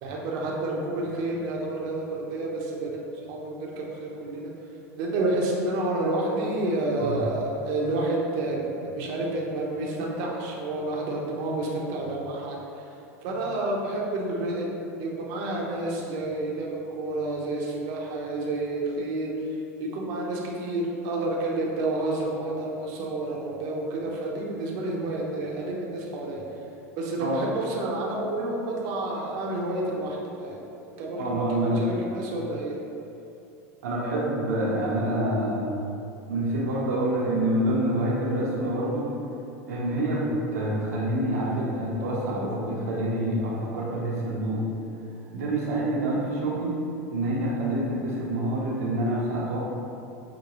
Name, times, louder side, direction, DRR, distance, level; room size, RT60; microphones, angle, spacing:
voice 1, 0.0-3.0 3.3-4.5 5.0-12.6 13.2-14.7 15.0-19.3 19.8-26.4 27.0-30.6 31.0-31.3 31.8-32.8, right 2 dB, 55° right, -3 dB, 0.8 m, -29 dB
voice 2, 31.2-32.2 33.8-35.7 36.3-39.1 39.7-44.7 45.3-46.7 47.1-49.6, right 1 dB, 80° right, -4 dB, 0.9 m, -27 dB
6.1 x 2.2 x 3.0 m, 2.7 s
hypercardioid pair, 100°, 9 cm